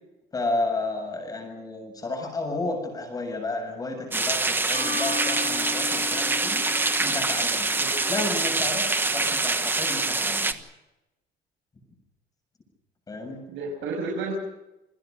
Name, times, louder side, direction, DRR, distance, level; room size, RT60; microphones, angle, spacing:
voice 1, 0.3-6.6 7.0-7.7 8.1-10.6 13.1-13.4, left 2 dB, 20° left, 4 dB, 7.3 m, -32 dB
sound 1, 4.1-10.5, right 3 dB, 10° right, 1.2 m, -25 dB
Mallet percussion, 4.7-8.0, left 7 dB, 50° left, 6.0 m, -37 dB
voice 2, 7.8-8.2 13.5-14.3, right 3 dB, 80° right, 0 dB, 6.5 m, -32 dB
29.0 x 24.0 x 5.2 m, 0.97 s
cardioid pair, 175°, 19 cm